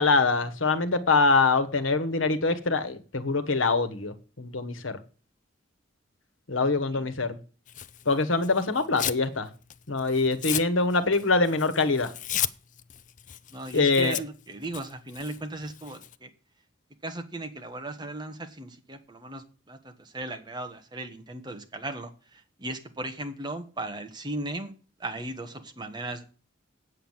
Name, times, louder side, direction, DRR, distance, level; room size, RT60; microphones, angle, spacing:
voice 1, 0.0-5.0 6.5-7.4 8.0-9.5 9.9-12.1 13.7-14.2, left 3 dB, 90° left, 1.3 m, -24 dB
Tearing, 7.7-9.3 9.6-16.2, left 11 dB, 40° left, 0.5 m, -35 dB
voice 2, 13.5-16.3 17.0-24.7 25.0-26.2, right 2 dB, 20° right, 1.4 m, -37 dB
8.5 x 8.0 x 7.3 m
head